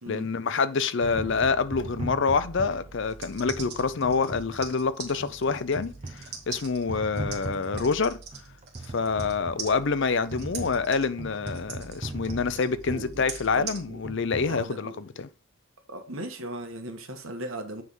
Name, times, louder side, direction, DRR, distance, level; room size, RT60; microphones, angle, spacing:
voice 1, 0.1-8.2 8.9-15.3, left 4 dB, 55° left, 0.5 m, -27 dB
sound 1, 1.0-14.6, right 2 dB, 30° right, 0.5 m, -39 dB
sound 2, 3.0-9.3 9.6-13.8, right 6 dB, 45° right, 1.9 m, -41 dB
voice 2, 12.9-13.3 13.5-14.0 14.4-15.0 15.9-17.8, right 1 dB, 70° right, 1.5 m, -38 dB
9.3 x 3.6 x 5.4 m
head